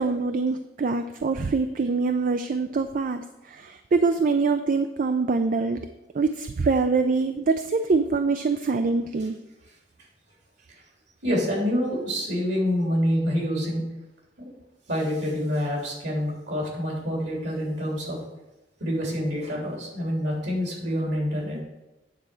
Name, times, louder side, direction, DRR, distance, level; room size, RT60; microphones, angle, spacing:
voice 1, 0.0-3.2 3.5-5.8 6.1-9.3, right 4 dB, 50° right, 8 dB, 0.4 m, -24 dB
voice 2, 11.2-13.8 14.4-14.5 14.9-18.2 18.8-21.6, equal, 70° right, -3 dB, 3.2 m, -27 dB
9.1 x 4.3 x 6.1 m, 0.99 s
head